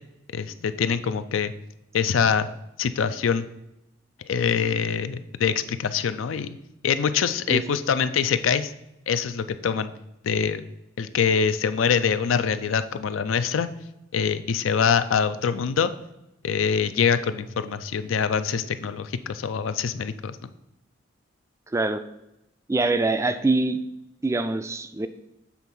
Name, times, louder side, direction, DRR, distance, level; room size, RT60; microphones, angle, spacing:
voice 1, 0.3-1.5 1.9-2.5 2.8-3.4 4.3-6.6 6.8-8.7 9.1-9.9 10.2-10.6 11.0-13.7 14.1-15.9 16.4-20.4, left 6 dB, 80° left, 12 dB, 0.4 m, -24 dB
voice 2, 21.7-22.0 22.7-23.8 24.2-25.1, right 2 dB, 15° right, 10 dB, 0.3 m, -24 dB
7.2 x 3.5 x 5.9 m, 0.86 s
head